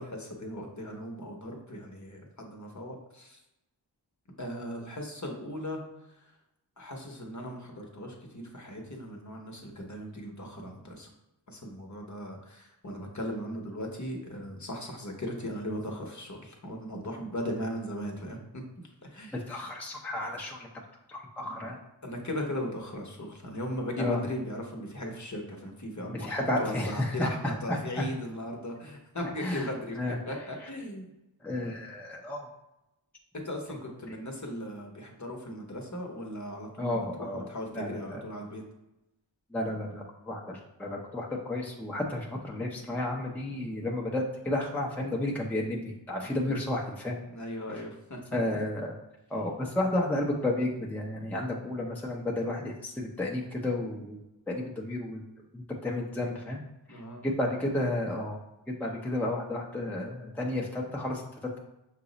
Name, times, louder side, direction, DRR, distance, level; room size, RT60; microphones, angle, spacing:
voice 1, 0.0-3.4 4.4-5.8 6.8-11.1 11.5-18.6 19.0-19.6 22.0-31.1 33.3-38.6 46.2-46.6 47.3-48.2 56.9-57.2, equal, 40° left, 1 dB, 0.9 m, -38 dB
voice 2, 19.3-20.7 21.1-21.8 24.0-24.2 26.0-28.1 29.4-29.7 30.0-30.2 31.4-32.5 34.1-34.2 36.8-37.5 37.7-38.2 39.5-47.2 47.7-47.8 48.3-48.9 49.3-55.2 55.5-56.6 56.9-58.4 58.7-61.6, left 1 dB, 5° left, -2 dB, 0.6 m, -32 dB
5.8 x 2.0 x 3.8 m, 0.93 s
wide cardioid pair, 55°, 46 cm